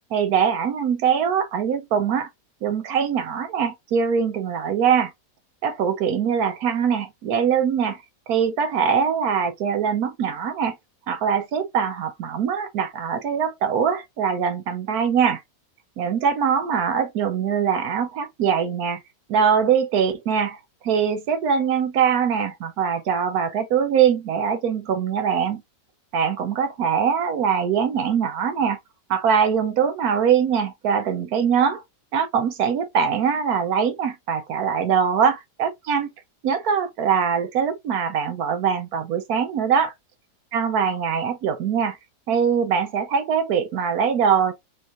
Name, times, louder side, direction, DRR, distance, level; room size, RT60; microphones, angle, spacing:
voice 1, 0.1-2.3 2.6-5.1 5.6-8.0 8.3-10.8 11.1-15.4 16.0-19.0 19.3-25.6 26.1-28.8 29.1-31.8 32.1-36.1 36.4-39.9 40.5-42.0 42.3-44.5, right 7 dB, 70° right, 1.1 m, -22 dB
4.4 x 3.1 x 2.5 m
omnidirectional pair, 1.8 m